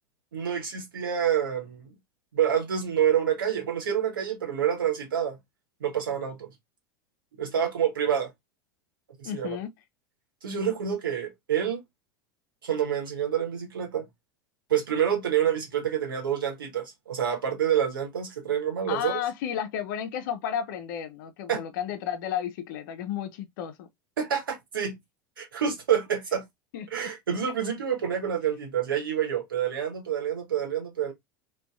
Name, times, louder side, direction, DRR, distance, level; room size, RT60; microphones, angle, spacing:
voice 1, 0.3-1.9 2.3-5.4 5.8-6.5 7.4-8.3 9.2-9.6 10.4-11.8 12.6-14.1 14.7-19.2 21.5-21.6 24.2-25.0 25.4-26.4 26.9-31.1, right 9 dB, 80° right, 0.9 m, -27 dB
voice 2, 9.2-9.7 18.9-23.9 26.7-27.1, left 9 dB, 65° left, 0.5 m, -33 dB
2.6 x 2.2 x 2.2 m
hypercardioid pair, 80°, 11 cm